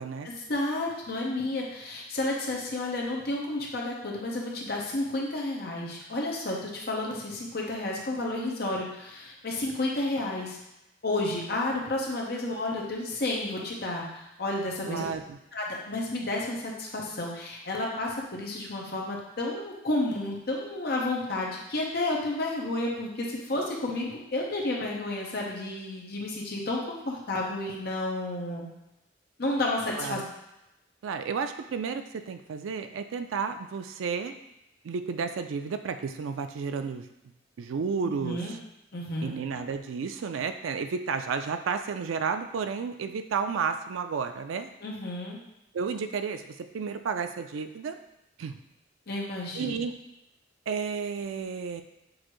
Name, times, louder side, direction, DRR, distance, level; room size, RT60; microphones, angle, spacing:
voice 1, 0.2-10.6 11.0-15.0 15.5-26.8 27.1-28.7 29.4-30.2 38.0-38.5 38.9-39.4 44.8-45.4 49.1-49.8, left 2 dB, 50° left, -2 dB, 0.8 m, -31 dB
voice 2, 14.9-15.4 30.0-30.2 31.0-34.4 34.8-37.1 37.6-38.6 39.2-44.7 45.7-48.0 48.4-48.5 49.5-50.0 50.7-51.8, right 5 dB, 85° right, 8 dB, 0.4 m, -32 dB
6.3 x 2.6 x 3.0 m, 0.91 s
head